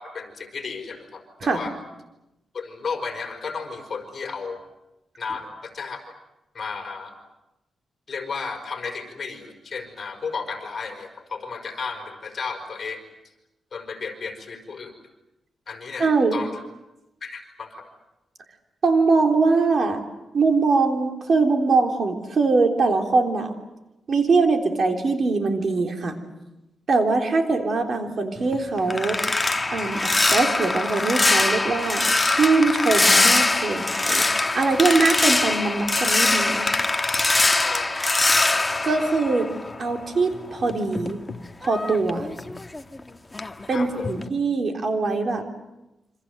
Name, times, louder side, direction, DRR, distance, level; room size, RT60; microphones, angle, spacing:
voice 1, 0.0-1.7 2.5-4.6 5.2-6.0 6.5-7.2 8.1-13.0 13.7-14.9 15.7-16.6 17.2-17.9 37.6-37.9 43.7-44.1, left 5 dB, 45° left, 5 dB, 5.1 m, -33 dB
voice 2, 16.0-16.4 18.8-20.0 20.3-23.5 24.1-26.2 26.9-29.2 29.7-30.0 30.3-34.2 34.5-36.7 38.8-39.5 39.8-41.2 41.6-42.3 43.7-45.4, right 3 dB, 50° right, 4 dB, 3.5 m, -22 dB
sound 1, 28.4-40.0 40.3-43.0 43.3-43.7 44.0-44.3, left 2 dB, 20° left, 1.3 m, -22 dB
28.0 x 25.5 x 8.0 m, 0.96 s
wide cardioid pair, 125°, 0 cm